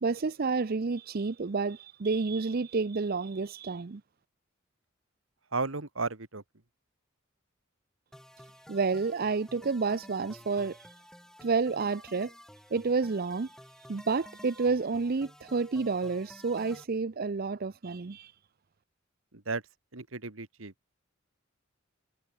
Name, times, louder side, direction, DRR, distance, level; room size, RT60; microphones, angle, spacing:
voice 1, 0.0-4.0 8.7-10.9 11.4-12.3 12.7-13.5 13.9-18.3, right 4 dB, 45° right, 0.6 m, -30 dB
voice 2, 5.5-6.4 19.5-19.6 19.9-20.7, right 3 dB, 75° right, 1.9 m, -34 dB
sound 1, 8.1-16.8, equal, 5° left, 5.4 m, -52 dB
head